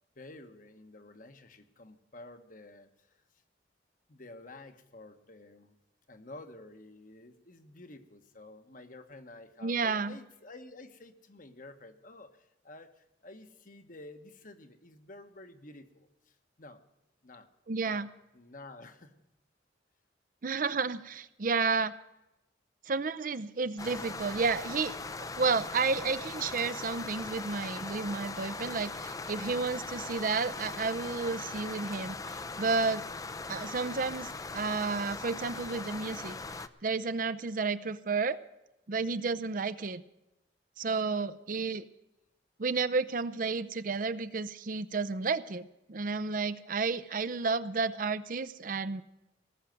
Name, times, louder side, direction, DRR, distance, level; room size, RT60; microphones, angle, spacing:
voice 1, 0.2-3.2 4.1-5.8 6.1-16.8 17.2-17.5 17.7-19.1 20.9-21.0 41.1-41.2, left 2 dB, 45° left, 8 dB, 1.2 m, -51 dB
voice 2, 9.6-10.2 17.7-18.1 20.4-21.9 22.9-33.1 33.5-36.4 36.8-38.4 38.9-40.0 40.8-41.8 42.6-49.0, right 4 dB, 45° right, 15 dB, 0.6 m, -31 dB
sound 1, 23.8-36.7, left 3 dB, 20° left, 0.5 m, -40 dB
18.5 x 6.5 x 9.2 m, 0.94 s
head